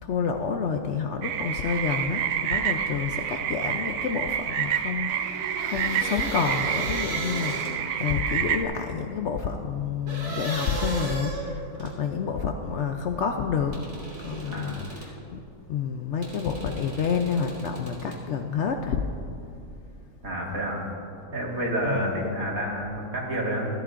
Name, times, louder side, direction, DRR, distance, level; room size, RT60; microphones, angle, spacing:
voice 1, 0.0-13.8 14.2-15.4 15.7-19.0 21.9-22.1, left 6 dB, 65° left, 5 dB, 0.7 m, -29 dB
sound 1, 1.2-8.6, right 9 dB, 85° right, 1.1 m, -28 dB
sound 2, 5.1-8.1 10.1-12.0 13.7-15.2 16.2-18.2, right 1 dB, 50° right, 2.4 m, -36 dB
voice 2, 14.4-14.8 20.2-20.8 21.3-23.7, right 1 dB, 65° right, -3 dB, 2.2 m, -29 dB
14.0 x 13.0 x 2.5 m, 2.6 s
omnidirectional pair, 1.6 m